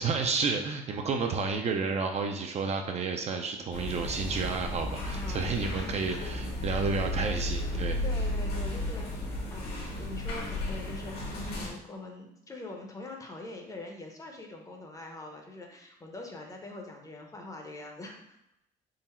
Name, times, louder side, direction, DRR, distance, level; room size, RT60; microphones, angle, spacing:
voice 1, 0.0-8.0, right 4 dB, 40° right, 3 dB, 0.4 m, -31 dB
sound 1, 3.7-11.7, left 1 dB, 75° left, 1.4 m, -33 dB
voice 2, 5.1-6.3 7.3-18.4, left 2 dB, 20° left, 2 dB, 0.7 m, -44 dB
3.8 x 2.0 x 4.2 m, 0.82 s
cardioid pair, 110°, 17 cm